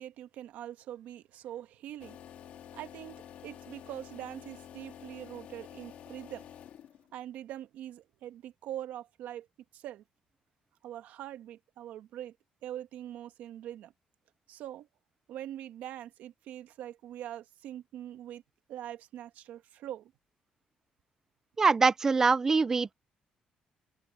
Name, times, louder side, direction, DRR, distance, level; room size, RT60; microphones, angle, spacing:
voice 1, 0.0-2.2 2.7-6.5 7.1-9.5 9.7-10.0 10.8-12.3 12.6-13.9 14.5-14.9 15.3-18.4 18.7-20.1, right 12 dB, 90° right, 1.4 m, -43 dB
sound 1, 2.0-7.2, left 10 dB, 65° left, 1.7 m, -49 dB
voice 2, 21.6-22.9, right 4 dB, 20° right, 0.4 m, -24 dB
open air
cardioid pair, 170°, 3 cm